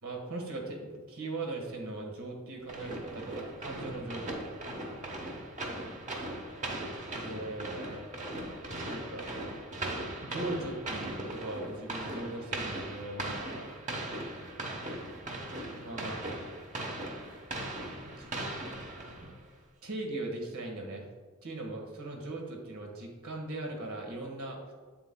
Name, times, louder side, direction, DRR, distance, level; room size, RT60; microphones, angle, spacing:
voice 1, 0.0-4.5 7.1-8.0 8.8-9.3 10.2-13.7 15.8-16.3 18.0-18.5 19.2-19.4 19.8-21.1 21.4-24.7, right 2 dB, 90° right, 1 dB, 1.5 m, -39 dB
sound 1, 2.7-19.5, right 1 dB, 35° right, 1.0 m, -39 dB
8.1 x 7.7 x 2.2 m, 1.5 s
head